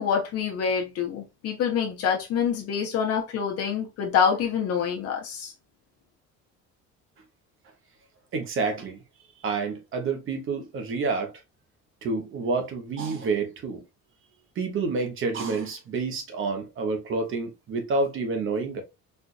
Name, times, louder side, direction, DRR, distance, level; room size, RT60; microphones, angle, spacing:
voice 1, 0.0-5.5, left 7 dB, 55° left, 0.9 m, -26 dB
voice 2, 8.3-9.0 9.4-11.3 12.0-13.8 14.6-18.8, right 4 dB, 45° right, 0.9 m, -28 dB
4.4 x 2.5 x 2.4 m
cardioid pair, 165°, 30 cm